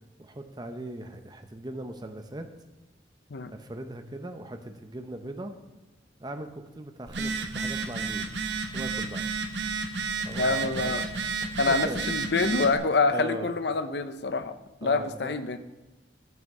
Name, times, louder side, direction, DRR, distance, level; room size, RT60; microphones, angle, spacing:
voice 1, 0.2-2.5 3.5-5.5 6.2-8.3 8.7-9.3 10.2-11.1 11.4-12.0 13.1-13.5 14.8-15.6, right 1 dB, 25° right, 6 dB, 0.7 m, -39 dB
Telephone, 7.1-12.7, right 4 dB, 80° right, 1.0 m, -31 dB
voice 2, 10.4-11.1 11.6-14.5 14.8-15.6, left 3 dB, 70° left, 10 dB, 0.7 m, -26 dB
9.3 x 5.7 x 8.1 m, 1.1 s
head